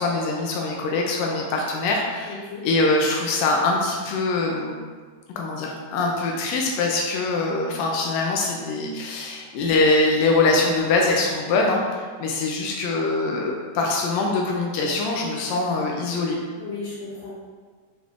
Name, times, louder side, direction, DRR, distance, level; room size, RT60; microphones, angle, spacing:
voice 1, 0.0-4.7 5.4-16.4, left 3 dB, 85° left, -1 dB, 1.5 m, -23 dB
voice 2, 2.2-2.7 16.6-17.3, left 4 dB, 60° left, -9 dB, 2.4 m, -35 dB
5.5 x 3.4 x 2.4 m, 1.6 s
omnidirectional pair, 3.7 m